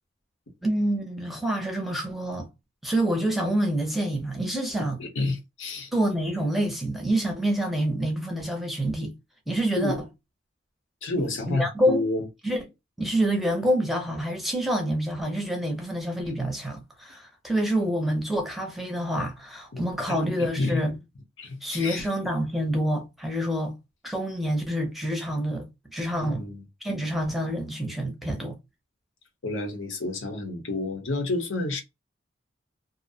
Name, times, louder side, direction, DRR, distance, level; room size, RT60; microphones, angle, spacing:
voice 1, 0.6-2.5 2.8-5.0 5.9-9.1 9.5-10.0 11.2-12.0 12.4-12.6 13.0-20.9 21.6-23.7 24.0-26.4 26.8-28.6, right 1 dB, ahead, 0.5 m, -27 dB
voice 2, 4.8-5.9 9.7-10.0 11.0-12.2 19.7-19.8 20.1-20.8 21.4-22.0 26.2-26.6 29.4-31.8, left 2 dB, 85° left, 0.8 m, -30 dB
2.5 x 2.1 x 2.6 m
head